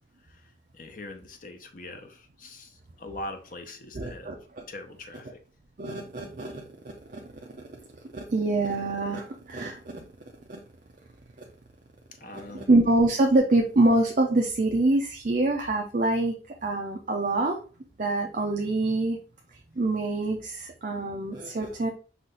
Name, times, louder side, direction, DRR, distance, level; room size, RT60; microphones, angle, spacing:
voice 1, 0.7-4.3 4.7-5.4 12.1-12.7, left 2 dB, 45° left, 0.7 m, -42 dB
voice 2, 3.9-4.6 5.8-6.6 7.1-7.2 8.1-10.0 10.5-10.6 12.5-16.4 16.6-17.6 18.0-19.2 19.8-21.9, right 2 dB, 45° right, 0.5 m, -25 dB
5.7 x 2.5 x 3.8 m
head